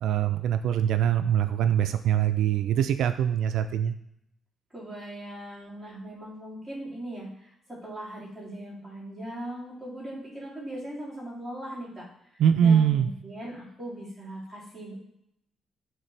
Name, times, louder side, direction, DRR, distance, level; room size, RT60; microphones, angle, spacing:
voice 1, 0.0-4.0 12.4-13.1, right 9 dB, 80° right, 9 dB, 0.4 m, -23 dB
voice 2, 4.7-12.1 12.6-14.9, right 1 dB, 5° left, -9 dB, 2.7 m, -39 dB
10.5 x 3.7 x 3.3 m, 0.77 s
cardioid pair, 165°, 0 cm